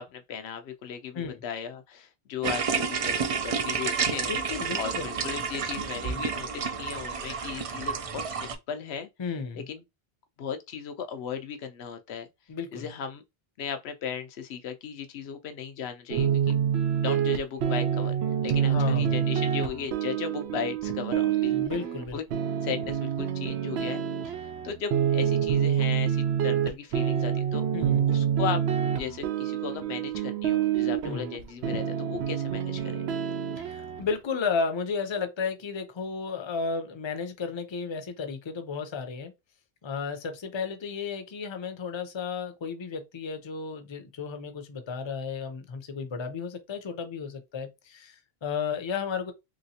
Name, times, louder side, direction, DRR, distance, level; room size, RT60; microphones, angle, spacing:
voice 1, 0.0-9.1 9.7-9.8 10.4-12.3 12.7-13.2 13.6-16.6 17.0-18.1 18.4-21.6 22.1-22.2 22.6-27.6 28.1-33.1, left 7 dB, 85° left, 0.9 m, -36 dB
sound 1, 2.4-8.6, right 6 dB, 55° right, 0.4 m, -30 dB
voice 2, 4.3-5.1 6.1-6.2 9.2-9.7 12.5-12.9 18.7-19.2 21.5-22.2 27.7-28.1 31.0-31.3 33.6-39.3 39.8-49.3, left 5 dB, 35° left, 0.5 m, -33 dB
sound 2, 16.1-34.1, right 9 dB, 85° right, 0.8 m, -27 dB
3.1 x 2.9 x 2.8 m
omnidirectional pair, 1.0 m